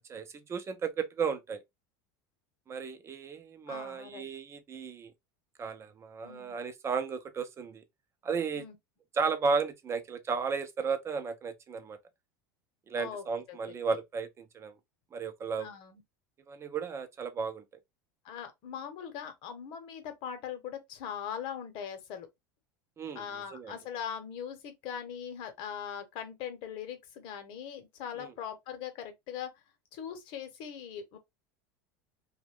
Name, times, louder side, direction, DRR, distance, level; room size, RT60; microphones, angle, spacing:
voice 1, 0.1-1.6 2.7-5.1 5.6-7.8 8.2-8.6 9.1-12.0 12.9-14.7 15.1-15.7 16.5-17.6 23.0-23.2 23.5-23.7 28.2-28.3, right 5 dB, 25° right, 0.6 m, -34 dB
voice 2, 3.7-4.3 6.2-6.6 8.5-8.7 12.9-13.7 15.6-16.0 18.2-22.3 23.1-29.5 29.9-31.2, left 8 dB, 55° left, 0.9 m, -41 dB
2.5 x 2.3 x 3.3 m
supercardioid pair, 105°, 10 cm